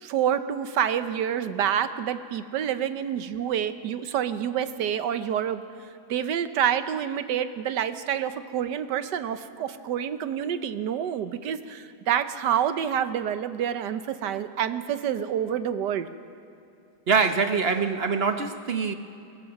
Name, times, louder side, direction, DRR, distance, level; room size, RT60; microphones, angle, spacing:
voice 1, 0.0-5.6 6.1-16.1, right 9 dB, 90° right, 1.5 m, -27 dB
voice 2, 17.1-18.9, right 5 dB, 50° right, 0.8 m, -24 dB
22.0 x 20.0 x 6.0 m
omnidirectional pair, 1.8 m